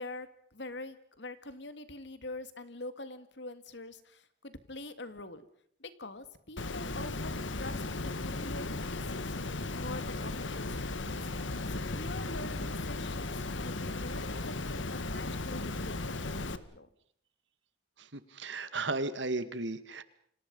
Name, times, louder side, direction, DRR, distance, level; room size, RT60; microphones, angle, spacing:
voice 1, 0.0-5.5 5.8-9.4 9.7-11.2 11.7-16.9, left 2 dB, 70° left, 12 dB, 2.1 m, -45 dB
Water, 6.6-16.6, left 2 dB, 85° left, 1.5 m, -36 dB
voice 2, 18.0-20.0, right 3 dB, 75° right, 12 dB, 2.0 m, -35 dB
29.5 x 26.0 x 5.5 m, 0.65 s
head